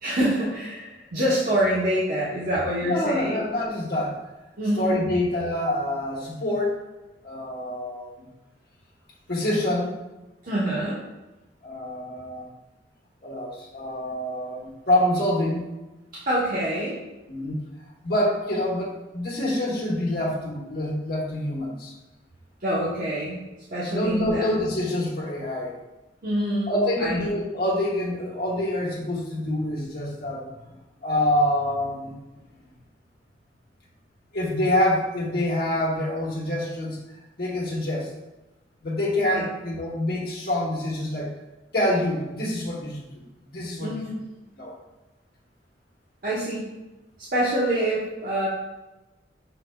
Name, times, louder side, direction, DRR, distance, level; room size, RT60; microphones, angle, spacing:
voice 1, 0.0-3.4 4.6-5.0 10.4-11.0 16.3-17.0 22.6-23.4 23.7-24.5 26.2-27.2 39.3-39.4 43.8-44.2 46.2-46.7 47.2-48.5, right 1 dB, 55° right, -8 dB, 0.9 m, -26 dB
voice 2, 2.8-4.2 4.8-6.8 7.2-8.3 9.3-9.9 11.6-12.5 13.2-15.7 17.3-17.6 18.0-21.9 23.8-25.8 26.7-30.5 31.0-32.1 34.3-37.0 37.4-38.1 38.8-41.4 41.7-44.0 44.6-44.7, left 1 dB, 60° left, -4 dB, 1.1 m, -26 dB
5.4 x 3.9 x 2.3 m, 1.1 s
head